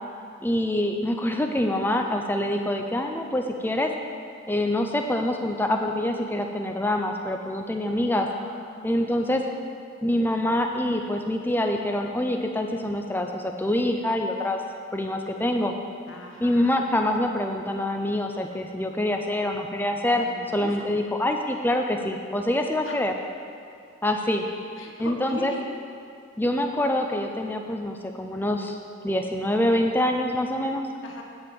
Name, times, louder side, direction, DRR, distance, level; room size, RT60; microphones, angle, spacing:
voice 1, 0.4-3.9 4.5-8.3 8.8-9.4 10.0-14.6 14.9-15.7 16.4-20.3 20.5-23.1 24.0-24.4 25.0-25.5 26.4-28.8 29.0-30.9, left 1 dB, 10° left, 4 dB, 0.5 m, -25 dB
voice 2, 8.2-9.0 16.1-16.8 20.2-20.9 22.8-23.0 24.8-25.7 31.0-31.2, left 2 dB, 70° left, 1 dB, 1.2 m, -41 dB
9.6 x 5.4 x 7.6 m, 2.4 s
head